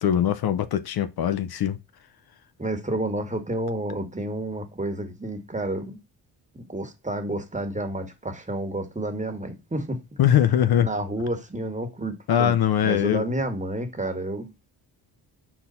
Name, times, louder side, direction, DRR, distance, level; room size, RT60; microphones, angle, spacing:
voice 1, 0.0-1.8 10.2-10.9 12.3-13.3, left 10 dB, 60° left, 0.7 m, -21 dB
voice 2, 2.6-6.0 6.5-10.0 10.8-12.5 12.8-14.5, right 1 dB, 15° right, 1.6 m, -30 dB
4.3 x 4.0 x 5.6 m
supercardioid pair, 65°, 42 cm